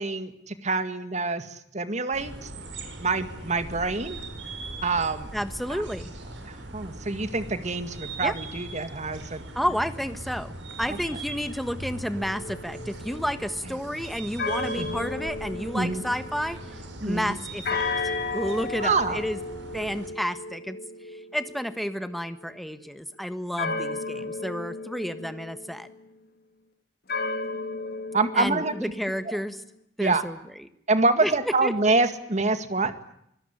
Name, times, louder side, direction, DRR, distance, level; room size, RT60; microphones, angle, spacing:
voice 1, 0.0-2.5 3.0-4.2 4.8-5.3 5.7-5.8 6.5-9.4 14.8-15.1 15.7-16.0 17.0-17.4 18.8-19.2 23.6-23.8 28.1-28.7 30.0-30.2 30.9-32.9, right 3 dB, 40° right, 10 dB, 2.1 m, -26 dB
sound 1, 2.1-20.1, right 2 dB, 85° right, 6.1 m, -40 dB
voice 2, 5.3-6.1 8.2-8.3 9.5-16.6 17.0-19.4 19.7-20.8 21.1-25.9 28.3-29.6 30.0-30.7 31.2-31.3 31.6-31.7, equal, ahead, 10 dB, 1.4 m, -31 dB
sound 2, 12.2-16.9 17.6-22.5 23.6-26.0 27.1-29.5, left 3 dB, 55° left, 2.6 m, -34 dB
25.0 x 17.5 x 9.9 m, 0.75 s
head